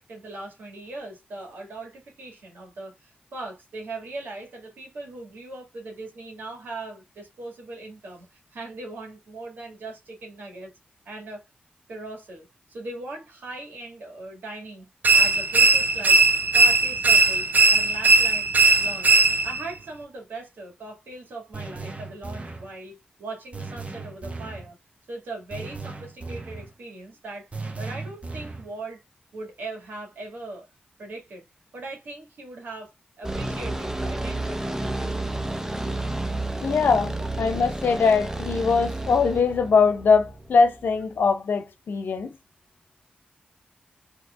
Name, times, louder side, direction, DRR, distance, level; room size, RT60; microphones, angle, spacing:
voice 1, 0.0-10.7 11.1-11.4 11.9-16.2 16.5-18.5 18.8-24.8 25.1-27.5 27.8-29.0 29.3-30.7 31.0-31.4 31.7-32.9 33.2-35.2 37.1-37.3, right 2 dB, 85° right, 1.8 m, -39 dB
sound 1, 15.0-19.7, right 3 dB, 60° right, 0.6 m, -18 dB
sound 2, 21.5-22.7 23.5-24.7 25.5-26.7 27.5-28.7, right 3 dB, 40° right, 1.1 m, -36 dB
sound 3, 33.2-41.2, right 2 dB, 15° right, 0.8 m, -31 dB
voice 2, 36.6-42.3, left 5 dB, 80° left, 0.8 m, -21 dB
4.5 x 3.2 x 2.3 m
cardioid pair, 40°, 3 cm